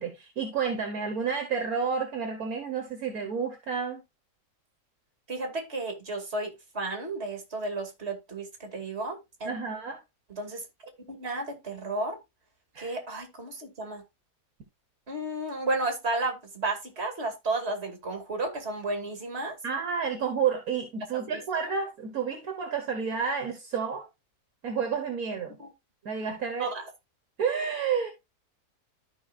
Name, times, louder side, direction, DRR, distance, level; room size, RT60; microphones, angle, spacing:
voice 1, 0.0-4.0 9.5-10.0 12.7-13.0 19.6-24.1 24.6-25.6 26.1-26.7 27.4-28.1, right 6 dB, 65° right, 1.8 m, -30 dB
voice 2, 5.3-9.5 10.3-10.6 11.1-12.2 12.8-14.0 15.1-19.6 21.1-21.4 25.6-25.7 26.6-26.9, right 2 dB, 40° right, 2.5 m, -33 dB
13.5 x 5.2 x 2.4 m
omnidirectional pair, 1.7 m